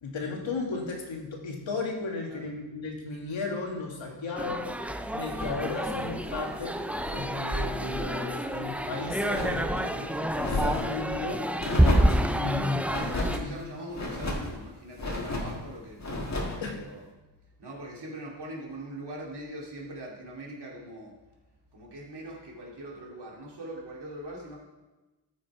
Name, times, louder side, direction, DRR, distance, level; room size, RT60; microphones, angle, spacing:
voice 1, 0.0-4.7 5.1-11.4 12.2-13.6 16.6-16.8, left 3 dB, 80° left, 0 dB, 2.0 m, -35 dB
voice 2, 4.0-4.5 13.3-16.1 16.7-17.0 17.6-21.2 21.7-24.6, right 1 dB, 60° right, -3 dB, 2.6 m, -42 dB
sound 1, 4.4-13.4, right 1 dB, 5° right, 0.3 m, -28 dB
sound 2, 5.3-7.3 7.7-8.2 8.6-9.9 10.3-11.0 11.6-12.3 12.9-13.4 13.9-14.5 15.0-15.6 16.0-16.6, left 2 dB, 35° left, 1.7 m, -33 dB
13.5 x 5.3 x 4.8 m, 1.1 s
wide cardioid pair, 110°, 45 cm